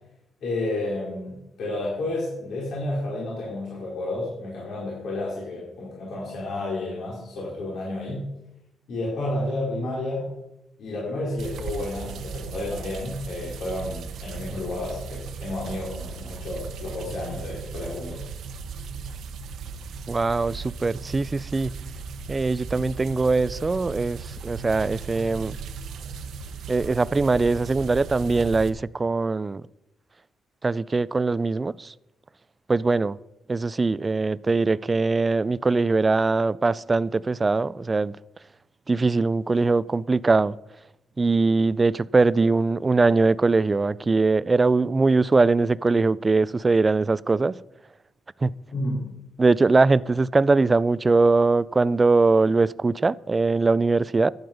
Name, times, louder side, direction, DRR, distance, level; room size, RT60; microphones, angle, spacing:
voice 1, 0.4-8.3 8.9-10.3 10.8-18.2 48.7-48.9, left 2 dB, 70° left, 4.2 m, -31 dB
sound 1, 11.4-28.7, right 5 dB, 70° right, 1.1 m, -37 dB
voice 2, 20.1-21.7 22.3-25.6 26.7-29.6 30.6-31.9 32.7-33.2 33.5-38.2 38.9-40.6 41.2-47.6 48.4-48.5 49.4-54.3, right 3 dB, 25° right, 0.3 m, -21 dB
12.0 x 9.5 x 5.2 m
cardioid pair, 115°, 0 cm